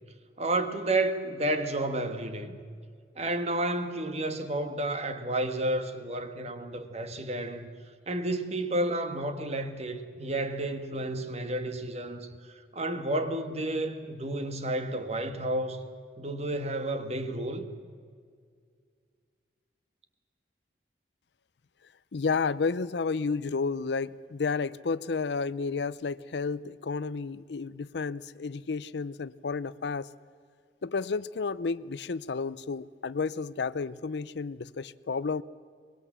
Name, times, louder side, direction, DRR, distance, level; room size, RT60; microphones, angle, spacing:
voice 1, 0.4-2.6 3.2-7.7 8.1-12.3 12.7-15.8 16.2-17.7, right 1 dB, 35° right, 1.6 m, -31 dB
voice 2, 22.1-30.1 30.8-35.4, left 4 dB, 70° left, 0.5 m, -31 dB
24.0 x 20.5 x 7.4 m
head